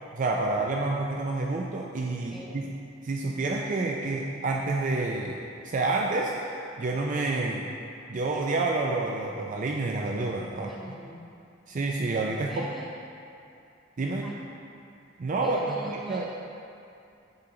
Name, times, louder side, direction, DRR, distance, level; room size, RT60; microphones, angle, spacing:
voice 1, 0.1-2.6 3.0-7.7 8.1-11.0 11.7-12.7 14.0-14.2 15.2-16.3, right 3 dB, 40° right, 0 dB, 0.4 m, -29 dB
voice 2, 10.5-11.2 12.3-12.9 14.0-14.4 15.4-16.3, equal, ahead, -7 dB, 1.3 m, -42 dB
9.7 x 4.4 x 3.8 m, 2.6 s
head